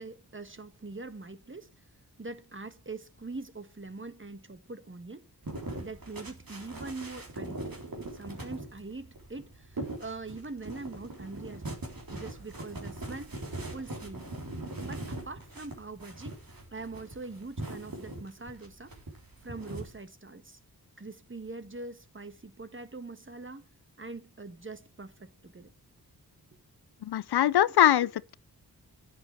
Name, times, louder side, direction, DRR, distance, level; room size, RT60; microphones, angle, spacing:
voice 1, 0.0-1.7 2.2-5.2 5.8-7.8 8.1-11.8 12.1-13.4 13.7-14.3 14.8-16.4 16.7-18.9 19.4-20.6 21.0-23.6 24.0-25.7 27.7-27.9, right 3 dB, 30° right, 1.5 m, -43 dB
sound 1, 5.4-20.0, right 2 dB, 60° right, 3.6 m, -41 dB
voice 2, 27.0-28.3, left 11 dB, 80° left, 0.5 m, -23 dB
9.2 x 8.7 x 6.1 m
cardioid pair, 40°, 39 cm